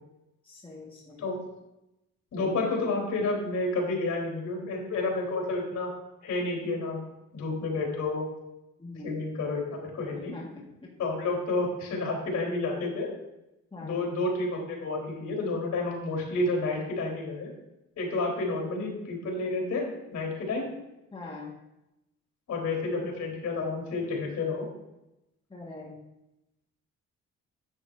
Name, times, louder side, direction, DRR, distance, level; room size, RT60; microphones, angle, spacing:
voice 1, 0.4-1.2 8.8-9.2 10.2-10.5 10.8-10.9 12.3-12.4 13.7-14.0 21.1-21.5 25.5-26.0, left 3 dB, 15° left, -3 dB, 1.7 m, -42 dB
voice 2, 2.3-5.9 6.2-7.0 7.3-8.3 9.0-10.3 11.0-13.1 13.8-17.5 18.0-20.7 22.5-24.7, left 2 dB, 65° left, 0 dB, 3.6 m, -30 dB
9.9 x 8.9 x 2.6 m, 0.91 s
cardioid pair, 90°, 30 cm